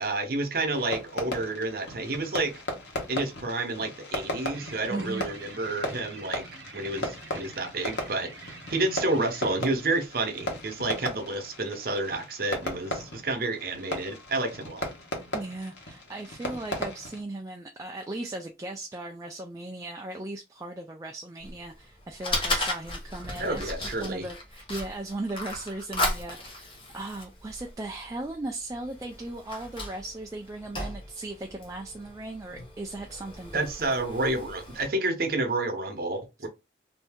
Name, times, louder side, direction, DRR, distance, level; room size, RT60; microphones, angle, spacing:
voice 1, 0.0-2.6 3.1-6.4 6.7-14.9 23.4-24.3 33.5-36.5, right 2 dB, 55° right, 0.8 m, -30 dB
Fireworks, 0.7-17.2, left 1 dB, 85° left, 1.1 m, -37 dB
sound 1, 4.5-9.5, right 4 dB, 90° right, 0.8 m, -46 dB
voice 2, 4.9-5.2 15.3-23.7 24.0-33.9, right 2 dB, 20° right, 0.3 m, -37 dB
Fire, 21.4-34.9, left 1 dB, 30° left, 0.9 m, -36 dB
2.7 x 2.6 x 3.5 m
head